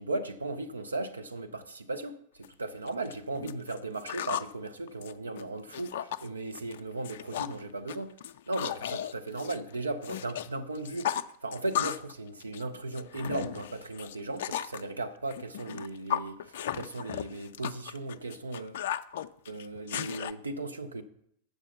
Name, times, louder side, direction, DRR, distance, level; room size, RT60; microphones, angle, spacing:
voice 1, 0.0-8.1 8.5-11.1 11.4-18.8 19.5-21.0, right 2 dB, 75° right, 0.6 m, -36 dB
sound 1, 2.4-2.5 2.9-4.5 4.9-6.3 6.5-6.8 7.0-7.6 7.9-10.5 10.8-12.1 12.4-14.8 15.3-20.3, left 10 dB, 55° left, 0.4 m, -35 dB
8.1 x 6.6 x 5.7 m
figure-of-eight pair, 90°, 0 cm